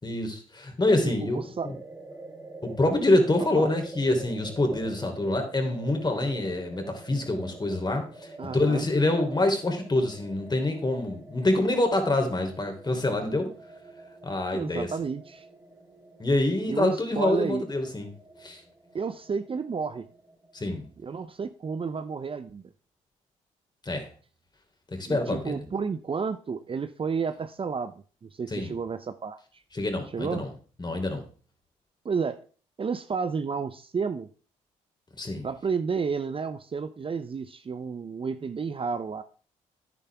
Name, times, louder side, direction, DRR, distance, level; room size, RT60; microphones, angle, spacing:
voice 1, 0.0-1.7 2.6-13.5 14.2-14.9 16.2-18.1 18.4-18.6 20.5-20.9 23.8-24.1 24.9-25.6 28.5-28.7 29.7-30.5 30.8-31.2 35.2-35.5, left 2 dB, 30° left, 4 dB, 3.4 m, -26 dB
voice 2, 1.0-1.7 3.6-3.7 8.4-8.9 14.5-15.5 16.7-17.6 18.9-20.0 21.0-22.6 25.1-27.9 28.2-29.4 30.1-30.4 32.0-32.4 32.8-34.3 35.4-39.2, right 5 dB, 35° right, 11 dB, 0.7 m, -31 dB
sound 1, 1.6-21.2, right 3 dB, 15° right, 3.4 m, -47 dB
10.0 x 10.0 x 3.5 m, 0.39 s
hypercardioid pair, 50°, 15 cm